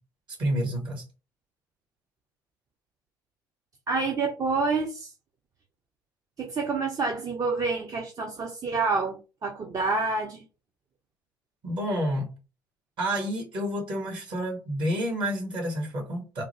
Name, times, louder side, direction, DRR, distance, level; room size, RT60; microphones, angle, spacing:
voice 1, 0.4-1.0 11.6-12.3 13.0-16.4, equal, 55° right, 1.9 m, -29 dB
voice 2, 3.9-5.1 6.4-10.4, right 4 dB, 40° right, 0.7 m, -28 dB
3.5 x 2.3 x 3.1 m
hypercardioid pair, 60°, 10 cm